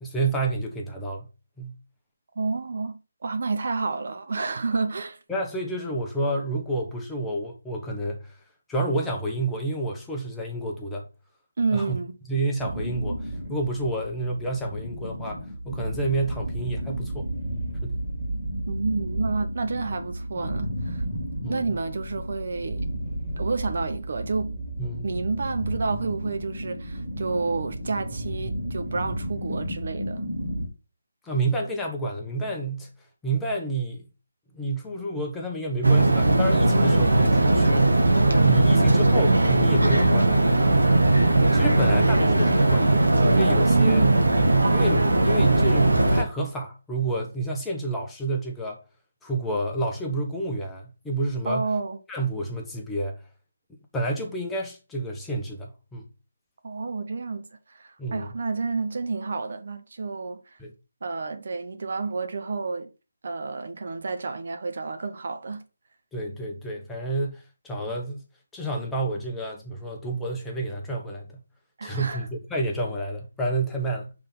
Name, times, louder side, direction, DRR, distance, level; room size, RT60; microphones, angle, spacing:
voice 1, 0.0-1.3 1.6-1.7 5.3-8.4 8.7-11.1 11.7-12.0 12.3-15.4 15.6-17.3 17.8-18.0 21.4-21.8 24.8-25.1 31.2-32.9 33.2-34.1 34.5-37.9 38.4-40.4 41.5-44.1 44.7-48.8 49.2-51.7 52.1-53.2 53.9-56.0 58.0-58.3 60.6-60.7 66.1-68.2 68.5-71.4 71.8-74.1, right 2 dB, 5° left, 1.0 m, -29 dB
voice 2, 2.4-5.2 11.6-12.2 18.7-21.0 21.5-22.8 23.4-24.6 25.0-30.3 43.7-44.2 51.5-52.0 56.6-60.4 61.0-62.9 63.2-65.6 71.8-72.3, right 4 dB, 55° right, 0.8 m, -29 dB
sound 1, 12.6-30.7, right 1 dB, 20° right, 2.3 m, -32 dB
sound 2, 35.8-46.2, right 2 dB, 80° right, 1.2 m, -19 dB
5.7 x 3.6 x 5.3 m
figure-of-eight pair, 155°, 0 cm